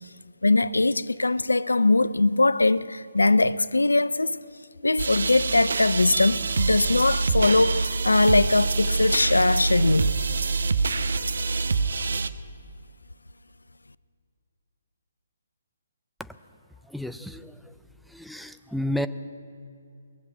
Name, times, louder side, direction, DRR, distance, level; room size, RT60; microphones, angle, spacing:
voice 1, 0.4-4.4 4.8-10.1, left 2 dB, 85° left, 0.4 m, -21 dB
sound 1, 5.0-12.3, right 4 dB, 65° right, 0.6 m, -26 dB
voice 2, 16.8-17.8 18.1-19.1, left 1 dB, ahead, 0.4 m, -32 dB
20.0 x 7.4 x 9.3 m
figure-of-eight pair, 140°, 0 cm